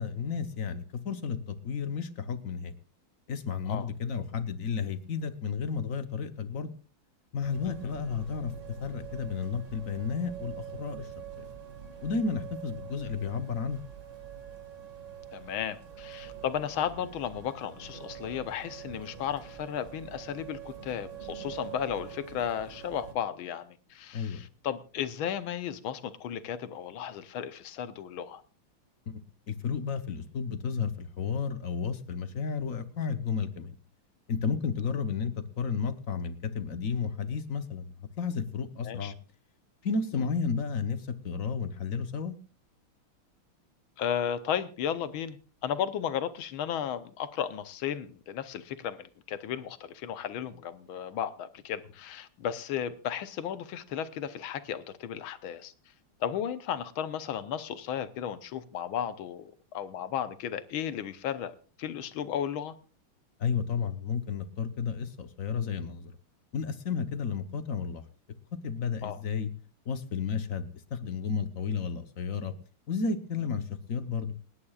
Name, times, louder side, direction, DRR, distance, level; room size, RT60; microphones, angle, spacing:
voice 1, 0.0-2.7 3.3-6.7 7.3-8.5 8.8-11.1 11.4-11.5 12.0-13.8 24.1-24.5 29.1-29.2 29.5-33.8 34.3-37.9 38.2-39.2 39.8-42.4 63.4-66.1 66.5-68.0 68.6-69.5 69.9-72.5 72.9-74.3, left 5 dB, 50° left, 1.1 m, -32 dB
sound 1, 7.4-23.1, right 8 dB, 35° right, 2.0 m, -45 dB
voice 2, 15.3-28.4 38.8-39.1 40.2-40.3 44.0-55.7 56.2-62.7 69.0-69.2, left 9 dB, 75° left, 1.6 m, -34 dB
28.5 x 9.8 x 2.4 m
omnidirectional pair, 2.4 m